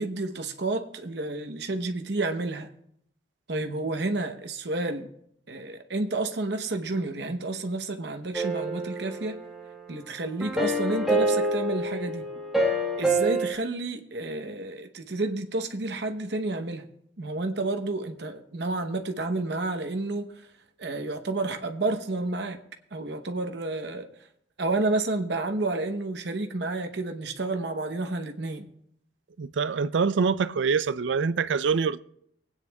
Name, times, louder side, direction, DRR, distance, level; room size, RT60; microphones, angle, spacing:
voice 1, 0.0-2.7 3.5-5.1 5.5-9.4 9.9-12.3 13.0-16.9 17.2-20.5 20.8-22.6 22.9-24.1 24.6-28.7, right 2 dB, 70° right, 0.9 m, -30 dB
sound 1, 8.3-9.9 10.4-13.5, right 1 dB, ahead, 1.4 m, -27 dB
voice 2, 29.4-32.0, right 5 dB, 85° right, 0.4 m, -25 dB
24.0 x 9.3 x 2.3 m
head